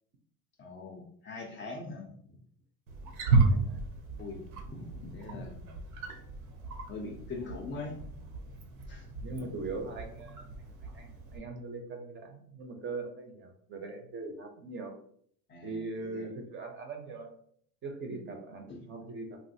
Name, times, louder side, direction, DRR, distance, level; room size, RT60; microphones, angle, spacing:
voice 1, 0.6-2.2 4.2-5.8 6.9-8.1 8.9-9.1 9.4-9.5 15.5-15.8 16.1-16.3 18.1-18.2 18.7-18.9, left 3 dB, 30° left, 1 dB, 0.4 m, -42 dB
Wild animals, 2.9-11.4, right 3 dB, 75° right, 0.7 m, -33 dB
voice 2, 3.3-3.8 9.2-10.5 10.8-14.9 15.6-17.3 17.8-19.4, right 3 dB, 30° right, 4 dB, 0.5 m, -41 dB
3.2 x 2.5 x 2.6 m, 0.64 s
supercardioid pair, 115°, 42 cm